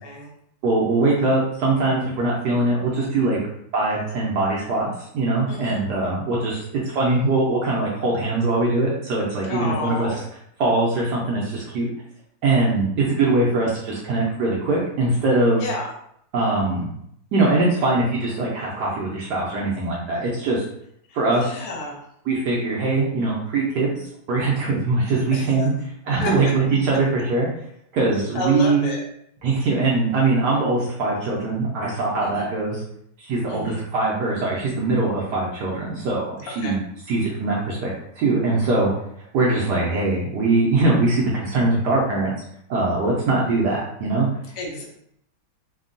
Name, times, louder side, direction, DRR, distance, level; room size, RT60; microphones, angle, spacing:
voice 1, 0.6-3.4 3.7-10.1 10.6-11.9 12.4-15.6 16.3-16.9 17.3-20.7 21.1-21.6 22.3-24.0 24.3-25.7 26.0-27.5 27.9-28.9 29.4-32.8 33.2-36.8 37.1-37.9 38.2-38.9 39.3-42.3 42.7-44.3, right 2 dB, 80° right, -4 dB, 0.9 m, -22 dB
voice 2, 5.5-5.8 9.5-10.2 15.6-15.9 21.3-22.0 25.3-25.5 26.2-26.3 28.3-29.0 32.2-32.5 33.5-33.8 36.5-36.8 44.5-44.8, left 2 dB, 65° left, -1 dB, 0.9 m, -30 dB
3.4 x 2.2 x 2.5 m, 0.72 s
omnidirectional pair, 2.4 m